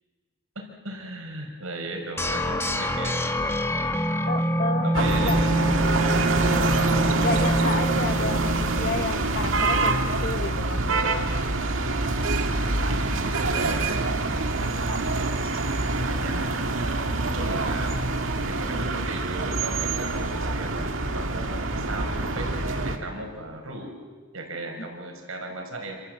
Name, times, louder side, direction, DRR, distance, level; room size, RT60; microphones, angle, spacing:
voice 1, 0.6-3.2 4.8-5.5 6.4-6.6 13.1-14.2 16.0-16.4 17.3-18.0 18.5-23.9 24.3-26.0, right 2 dB, 85° right, 3 dB, 5.5 m, -36 dB
sound 1, 2.2-9.1, equal, 10° left, 1.7 m, -26 dB
voice 2, 4.3-5.4 7.2-11.3, left 3 dB, 45° left, 8 dB, 1.5 m, -31 dB
sound 2, 4.9-23.0, right 2 dB, 70° right, 2.0 m, -26 dB
27.5 x 27.0 x 7.9 m, 1.5 s
head